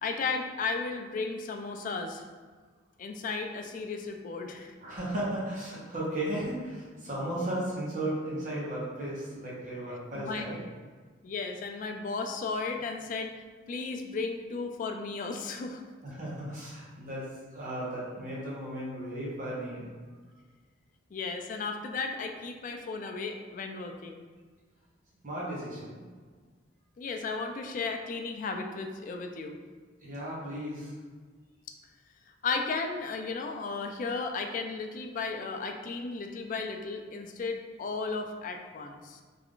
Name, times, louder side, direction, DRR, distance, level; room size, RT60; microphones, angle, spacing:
voice 1, 0.0-2.2 3.0-4.7 10.1-10.5 11.2-13.3 13.7-15.8 21.1-24.2 27.0-29.6 32.4-39.2, left 4 dB, 45° left, 4 dB, 0.3 m, -34 dB
voice 2, 4.8-10.6 16.0-17.3 17.5-20.1 25.2-26.1 30.0-30.9, right 1 dB, 45° right, -6 dB, 0.9 m, -35 dB
3.4 x 2.4 x 3.6 m, 1.5 s
head